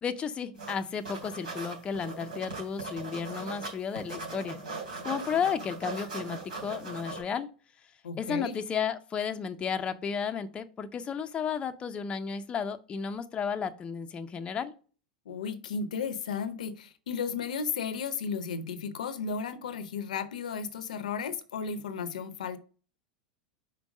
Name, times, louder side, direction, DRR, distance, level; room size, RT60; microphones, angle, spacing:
voice 1, 0.0-4.6 5.0-7.5 8.2-14.7, left 6 dB, 25° left, 0.5 m, -33 dB
sound 1, 0.6-0.8 1.0-3.7 4.0-7.2, right 3 dB, 75° right, 3.4 m, -39 dB
voice 2, 8.0-8.6 15.3-22.6, left 6 dB, 70° left, 0.7 m, -34 dB
5.2 x 4.5 x 5.2 m
figure-of-eight pair, 90°, 4 cm